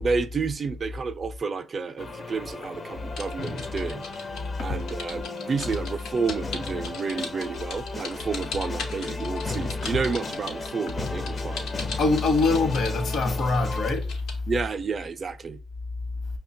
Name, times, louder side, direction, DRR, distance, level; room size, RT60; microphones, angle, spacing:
voice 1, 0.0-4.0 4.6-11.7 14.5-15.6, right 4 dB, 40° right, 0.4 m, -30 dB
sound 1, 2.0-13.9, left 3 dB, 35° left, 0.5 m, -36 dB
sound 2, 3.2-14.4, left 4 dB, 85° left, 0.9 m, -38 dB
voice 2, 12.0-14.2, left 3 dB, 55° left, 0.9 m, -23 dB
5.4 x 2.2 x 2.6 m
cardioid pair, 90°, 0 cm